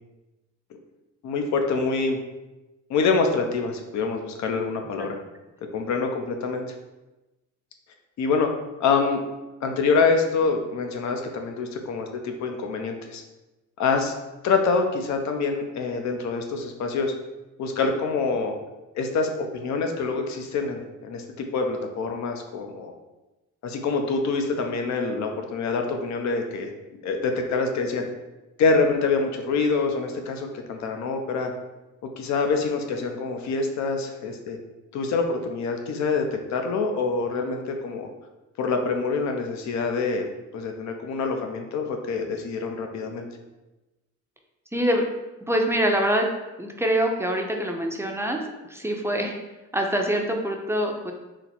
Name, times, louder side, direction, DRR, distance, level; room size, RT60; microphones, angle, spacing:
voice 1, 1.2-2.2 2.9-5.2 5.7-6.7 8.2-8.5 8.8-9.2 9.6-13.2 13.8-14.1 14.4-17.1 17.6-18.5 19.0-22.9 23.6-26.7 27.0-28.1 28.6-31.5 32.2-34.6 34.9-38.1 38.6-40.3 40.5-43.3, left 4 dB, 65° left, 4 dB, 0.6 m, -25 dB
voice 2, 44.7-45.0 45.4-46.3 46.6-48.4 48.7-49.4 49.7-51.1, right 1 dB, 10° right, 1 dB, 0.5 m, -24 dB
4.1 x 2.0 x 4.2 m, 1.1 s
cardioid pair, 90°, 30 cm